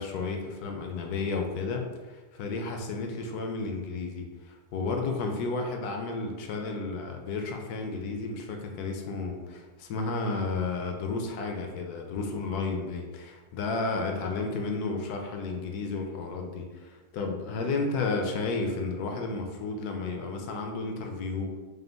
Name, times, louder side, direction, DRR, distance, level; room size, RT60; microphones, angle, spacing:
voice 1, 0.0-21.5, left 3 dB, 75° left, 3 dB, 1.1 m, -32 dB
5.0 x 2.2 x 3.3 m, 1.3 s
omnidirectional pair, 1.7 m